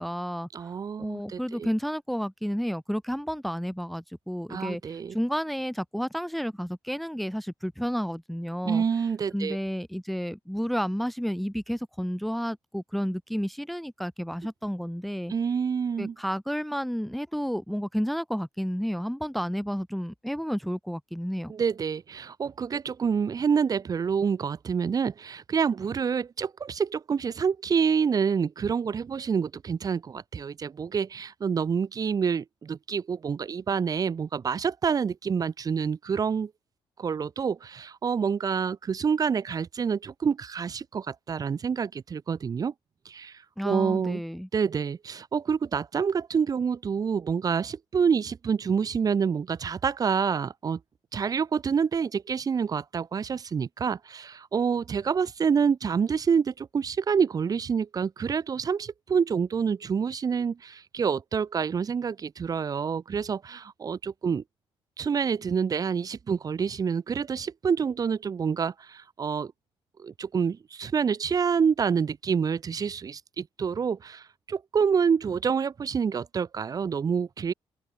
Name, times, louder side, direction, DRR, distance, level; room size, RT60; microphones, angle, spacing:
voice 1, 0.0-0.7 1.0-8.8 9.3-15.3 16.0-21.5 43.6-44.5, equal, ahead, 1.1 m, -31 dB
voice 2, 0.5-1.7 4.5-5.2 8.6-9.6 15.3-16.1 21.5-36.5 37.0-42.7 43.0-44.2 44.5-50.8 51.1-64.4 65.0-69.5 70.0-77.5, right 6 dB, 40° right, 2.4 m, -27 dB
open air
cardioid pair, 140°, 10 cm